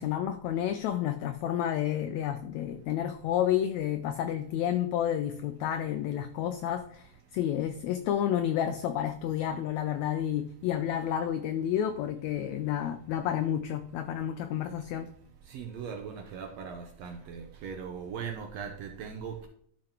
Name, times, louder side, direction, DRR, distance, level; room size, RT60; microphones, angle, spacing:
voice 1, 0.0-15.1, left 10 dB, 85° left, 10 dB, 1.6 m, -30 dB
voice 2, 15.4-19.5, right 6 dB, 75° right, 4 dB, 1.6 m, -39 dB
12.5 x 5.8 x 2.9 m, 0.64 s
omnidirectional pair, 3.7 m